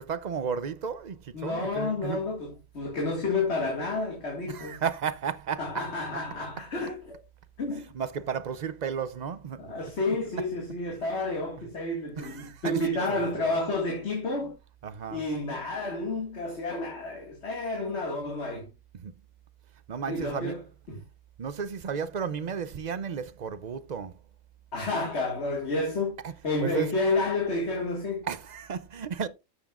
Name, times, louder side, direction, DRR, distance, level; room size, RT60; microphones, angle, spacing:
voice 1, 0.0-2.2 4.5-5.9 7.9-9.7 12.2-13.6 14.8-15.3 18.9-19.1 19.9-20.6 21.4-24.1 26.2-26.3 26.6-26.9 28.2-29.3, right 6 dB, 50° right, 0.5 m, -33 dB
voice 2, 1.3-4.8 5.6-7.2 7.6-7.9 9.6-14.5 15.1-18.7 20.1-21.0 24.7-26.2 26.4-28.3, left 2 dB, 55° left, 2.2 m, -30 dB
13.0 x 7.1 x 2.4 m
omnidirectional pair, 1.3 m